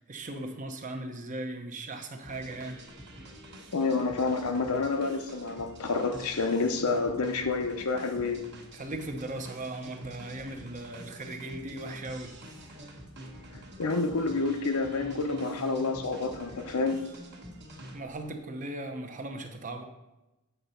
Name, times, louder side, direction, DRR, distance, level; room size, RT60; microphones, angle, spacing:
voice 1, 0.0-2.8 8.7-12.4 17.9-19.8, right 2 dB, 35° right, 0.8 m, -38 dB
sound 1, 2.2-18.3, right 1 dB, 50° right, 1.3 m, -47 dB
voice 2, 3.7-8.4 13.5-17.0, left 3 dB, 70° left, 0.8 m, -29 dB
8.1 x 4.0 x 5.6 m
head